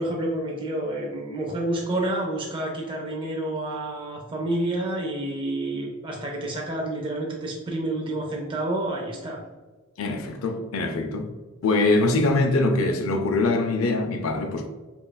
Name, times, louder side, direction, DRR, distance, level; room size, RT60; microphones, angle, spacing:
voice 1, 0.0-9.4, right 1 dB, 25° right, 0.4 m, -29 dB
voice 2, 10.0-11.3 11.6-14.7, left 2 dB, 70° left, 0.4 m, -23 dB
5.4 x 2.4 x 2.2 m
head